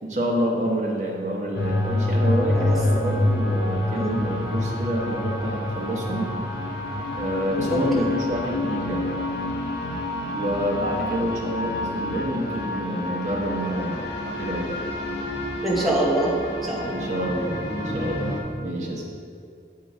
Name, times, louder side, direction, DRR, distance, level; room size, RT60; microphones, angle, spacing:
voice 1, 0.0-6.3 7.1-9.1 10.3-14.7 16.9-19.1, right 1 dB, 40° right, -3 dB, 1.2 m, -28 dB
sound 1, 1.5-18.4, left 1 dB, 80° left, 0.9 m, -27 dB
voice 2, 7.7-8.1 15.6-16.3 16.6-17.0, right 1 dB, ahead, -5 dB, 0.8 m, -24 dB
7.5 x 4.4 x 4.2 m, 2.3 s
head